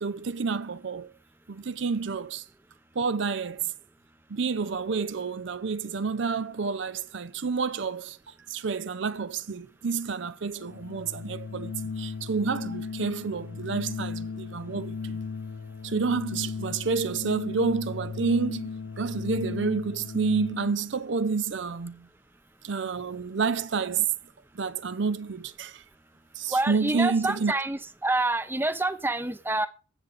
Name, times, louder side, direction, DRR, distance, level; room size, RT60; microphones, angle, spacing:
voice 1, 0.0-1.1 1.5-2.4 2.9-3.7 4.3-8.2 8.5-15.2 15.8-18.7 19.0-22.1 22.6-24.1 24.5-25.8 26.3-27.5, right 5 dB, 65° right, 0.6 m, -29 dB
Organ, 10.6-20.9, left 5 dB, 70° left, 0.5 m, -36 dB
voice 2, 26.5-29.7, right 2 dB, 10° right, 0.7 m, -27 dB
15.5 x 7.5 x 4.1 m
head